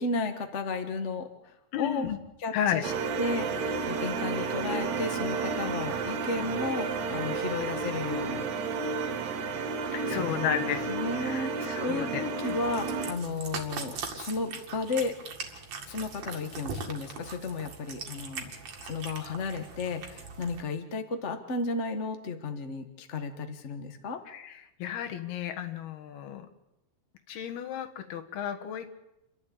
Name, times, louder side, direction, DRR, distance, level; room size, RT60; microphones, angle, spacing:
voice 1, 0.0-2.1 2.4-8.5 10.1-15.2 15.9-18.5 18.8-24.2, left 3 dB, 55° left, 6 dB, 0.7 m, -34 dB
voice 2, 1.7-2.2 2.5-2.8 9.9-10.9 11.2-12.2 24.3-24.5 24.8-26.5 27.3-28.9, left 9 dB, 85° left, 5 dB, 3.6 m, -33 dB
sound 1, 2.8-13.1, right 4 dB, 70° right, 3.3 m, -32 dB
Cat, 12.4-20.6, right 5 dB, 50° right, 2.9 m, -41 dB
29.5 x 12.0 x 8.6 m, 0.90 s
omnidirectional pair, 4.3 m